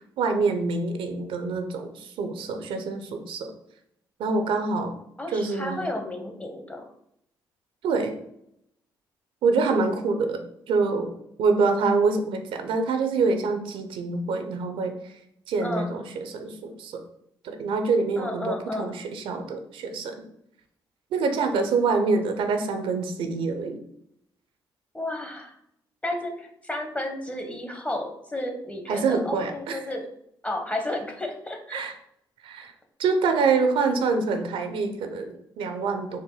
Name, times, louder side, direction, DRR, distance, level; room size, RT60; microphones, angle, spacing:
voice 1, 0.2-3.5 4.2-5.0 5.3-5.9 7.8-8.2 9.4-10.4 10.7-11.1 11.4-14.9 15.5-17.0 17.4-20.1 21.1-23.8 28.9-29.8 31.7-31.9 32.4-32.7 33.0-36.2, right 4 dB, 80° right, 6 dB, 0.6 m, -25 dB
voice 2, 5.2-6.9 15.6-16.0 18.2-19.0 24.9-25.6 26.0-30.0 30.4-31.9, left 1 dB, 15° left, 3 dB, 0.9 m, -32 dB
4.3 x 2.2 x 4.6 m, 0.75 s
supercardioid pair, 70°, 9 cm